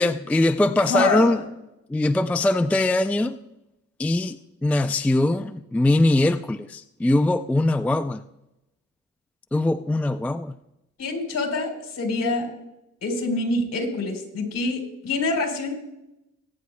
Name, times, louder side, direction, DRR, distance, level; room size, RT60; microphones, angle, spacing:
voice 1, 0.0-1.4 1.9-3.4 4.0-8.2 9.5-10.6, left 2 dB, 5° left, 0.3 m, -21 dB
voice 2, 0.9-1.3 11.0-12.5 13.0-15.7, left 2 dB, 60° left, 3.7 m, -26 dB
23.0 x 9.3 x 2.2 m
cardioid pair, 90°, 30 cm